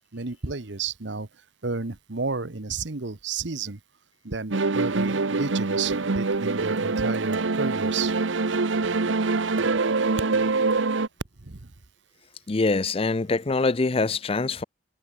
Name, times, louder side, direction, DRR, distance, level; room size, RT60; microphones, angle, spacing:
voice 1, 0.1-1.3 1.6-3.8 4.2-8.1 11.4-11.7, right 4 dB, 70° right, 1.3 m, -32 dB
sound 1, 4.5-11.1, right 3 dB, 85° right, 0.9 m, -24 dB
voice 2, 12.5-14.6, left 3 dB, 30° left, 0.5 m, -24 dB
head